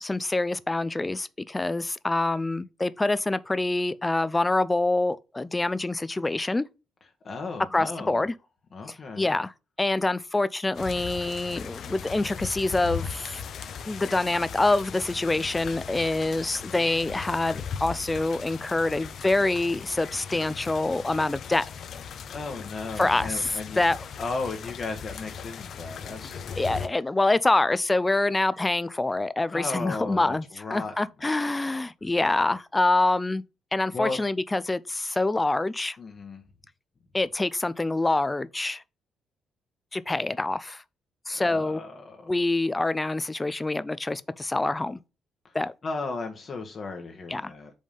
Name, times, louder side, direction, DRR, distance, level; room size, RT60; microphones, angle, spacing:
voice 1, 0.0-6.7 7.7-8.3 8.9-9.5 9.8-13.4 13.9-21.7 23.0-24.0 26.6-30.4 30.7-33.4 33.7-36.0 37.1-38.8 39.9-40.8 41.3-41.8 42.3-45.0 45.5-45.7 47.3-47.5, left 2 dB, 15° left, 0.4 m, -26 dB
voice 2, 7.2-8.2 8.7-9.3 22.3-23.8 24.2-26.4 29.5-30.9 33.9-34.2 36.0-36.4 41.3-42.3 45.8-47.7, left 3 dB, 40° left, 1.1 m, -35 dB
sound 1, 10.7-26.9, left 7 dB, 60° left, 0.6 m, -38 dB
5.3 x 3.5 x 5.3 m
cardioid pair, 90°, 0 cm